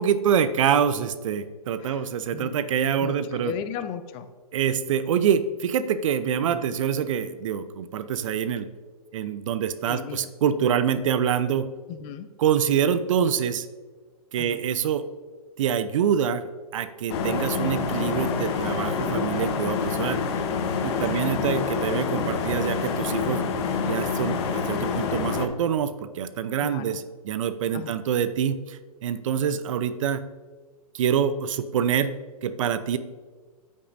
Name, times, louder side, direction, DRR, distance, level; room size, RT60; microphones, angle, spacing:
voice 1, 0.0-3.5 4.5-8.7 9.1-11.7 12.4-13.7 14.3-15.0 15.6-16.4 16.7-20.2 20.8-23.4 23.8-30.2 30.9-32.1 32.4-33.0, right 8 dB, 55° right, 12 dB, 0.6 m, -25 dB
voice 2, 1.8-2.6 3.0-4.3 6.4-6.7 9.8-10.3 11.9-12.3 14.4-14.6 21.1-21.2 26.6-27.0 27.7-28.0, left 9 dB, 30° left, 10 dB, 0.5 m, -37 dB
sound 1, 17.1-25.5, left 5 dB, 45° left, 1.0 m, -27 dB
13.5 x 5.5 x 2.6 m, 1.4 s
hypercardioid pair, 125°, 20 cm